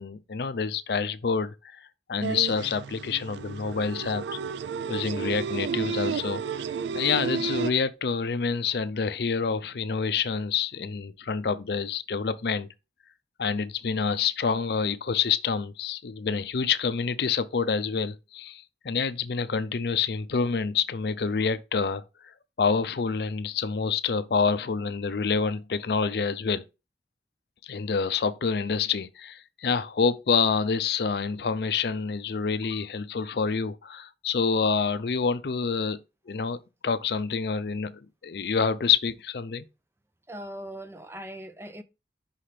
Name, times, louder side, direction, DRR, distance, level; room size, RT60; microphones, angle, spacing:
voice 1, 0.0-4.2 4.9-6.7 6.9-12.7 13.4-26.6 27.6-36.0 36.3-39.7, left 5 dB, 60° left, 0.5 m, -27 dB
sound 1, 2.2-7.7, right 6 dB, 75° right, 0.3 m, -32 dB
voice 2, 40.3-41.8, equal, 15° right, 0.4 m, -40 dB
5.5 x 3.3 x 5.7 m
head